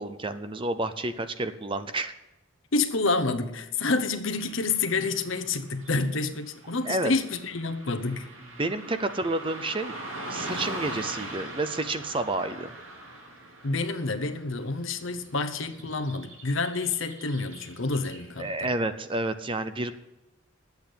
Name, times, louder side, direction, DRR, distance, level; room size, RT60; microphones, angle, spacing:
voice 1, 0.0-2.1 6.8-7.1 8.6-9.9 10.3-12.7 18.4-20.0, right 2 dB, 25° right, 0.6 m, -30 dB
voice 2, 2.7-8.3 13.6-18.7, left 3 dB, 65° left, 0.9 m, -28 dB
Car passing by / Traffic noise roadway noise, 4.3-18.6, right 1 dB, 70° right, 2.5 m, -42 dB
11.0 x 8.1 x 8.5 m
head